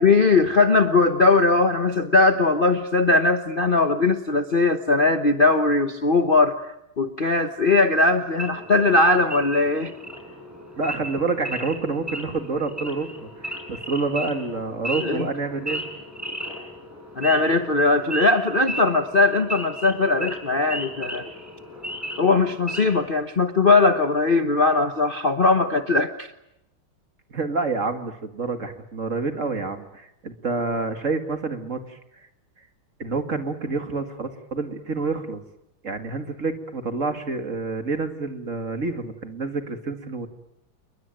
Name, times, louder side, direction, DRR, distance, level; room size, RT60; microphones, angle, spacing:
voice 1, 0.0-6.6 7.0-9.9 15.0-15.3 17.1-21.2 22.2-26.3, left 3 dB, 35° left, 7 dB, 1.0 m, -19 dB
Wild animals / Idling, 8.3-23.1, equal, 5° right, 6.6 m, -36 dB
voice 2, 10.8-15.8 27.3-32.0 33.0-35.4 35.8-40.3, right 3 dB, 40° right, 7 dB, 2.2 m, -28 dB
29.0 x 21.5 x 9.1 m, 0.86 s
omnidirectional pair, 2.2 m